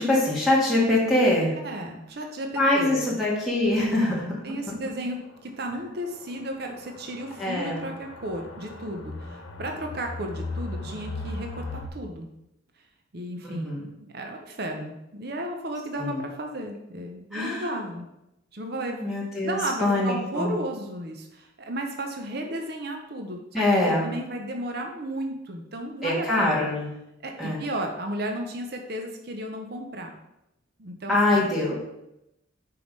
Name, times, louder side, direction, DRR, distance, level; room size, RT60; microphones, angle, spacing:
voice 1, 0.0-1.5 2.5-4.4 7.4-7.9 13.4-13.8 16.0-16.2 17.3-17.7 19.0-20.5 23.5-24.1 26.0-26.9 27.4-27.6 31.1-31.7, left 1 dB, ahead, -6 dB, 1.4 m, -23 dB
voice 2, 1.6-3.2 4.1-12.3 13.1-18.1 18.5-26.7 27.2-30.1 30.8-31.5, right 1 dB, 50° right, 3 dB, 0.7 m, -34 dB
sound 1, 3.7-3.8 4.1-4.2 4.7-4.8 5.7-11.9, left 2 dB, 90° left, 0.9 m, -38 dB
5.2 x 4.8 x 5.2 m, 0.87 s
head